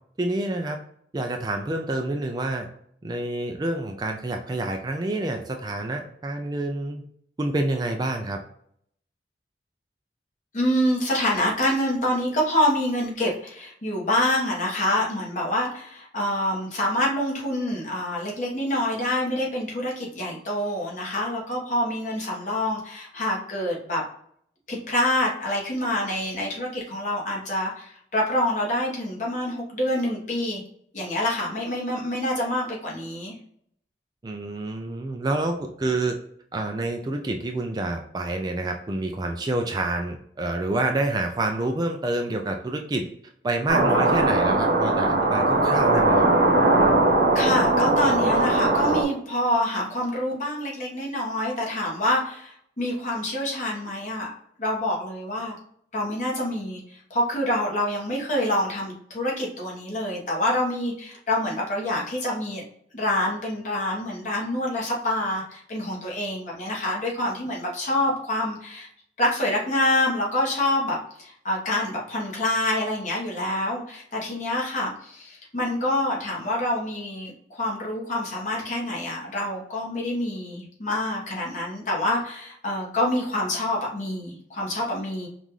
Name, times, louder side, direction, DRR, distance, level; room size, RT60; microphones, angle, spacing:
voice 1, 0.2-0.8 1.1-2.7 3.0-7.0 7.4-8.4 34.2-36.2 36.5-43.1 43.4-46.3, right 2 dB, 25° right, 3 dB, 0.3 m, -28 dB
voice 2, 10.5-24.0 24.7-30.6 30.9-33.4 47.3-54.3 54.6-55.6 55.9-62.6 62.9-68.9 69.2-85.3, left 1 dB, 45° left, -3 dB, 1.2 m, -26 dB
sound 1, 43.7-49.0, right 2 dB, 65° right, 1.0 m, -20 dB
5.5 x 2.5 x 3.1 m, 0.67 s
head